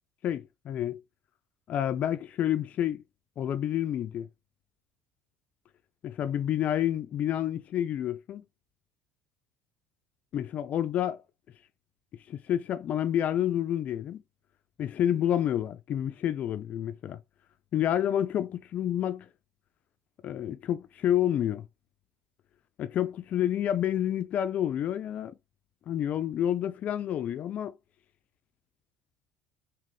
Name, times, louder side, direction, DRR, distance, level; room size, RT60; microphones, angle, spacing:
voice 1, 0.2-1.0 1.7-3.0 3.4-4.3 6.0-8.4 10.3-11.2 12.3-14.2 14.8-17.2 17.7-19.3 20.2-21.7 22.8-25.3 25.9-27.7, left 10 dB, 45° left, 0.3 m, -29 dB
2.6 x 2.5 x 3.3 m
figure-of-eight pair, 65°, 4 cm